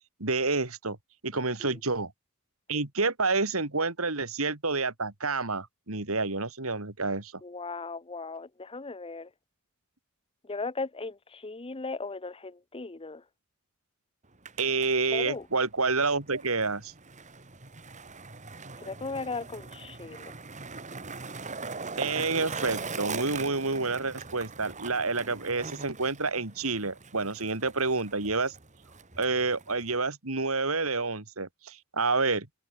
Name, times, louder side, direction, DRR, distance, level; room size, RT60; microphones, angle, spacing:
voice 1, 0.2-1.0 1.2-2.1 2.7-7.3 14.6-16.9 22.0-28.5 29.2-32.5, right 3 dB, 80° right, 3.1 m, -29 dB
voice 2, 7.4-9.3 10.5-13.2 15.1-15.4 18.8-20.3, left 3 dB, 25° left, 0.9 m, -37 dB
Skateboard, 14.2-30.0, right 4 dB, 35° right, 3.0 m, -41 dB
open air
head